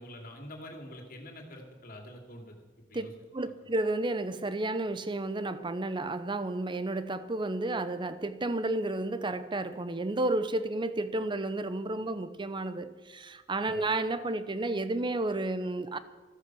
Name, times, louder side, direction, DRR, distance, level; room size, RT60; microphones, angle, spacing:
voice 1, 0.0-2.6 2.9-3.1 13.7-13.9, left 1 dB, 50° left, 2.6 m, -46 dB
voice 2, 3.3-16.0, right 2 dB, 25° right, 0.7 m, -32 dB
13.5 x 13.5 x 6.2 m
head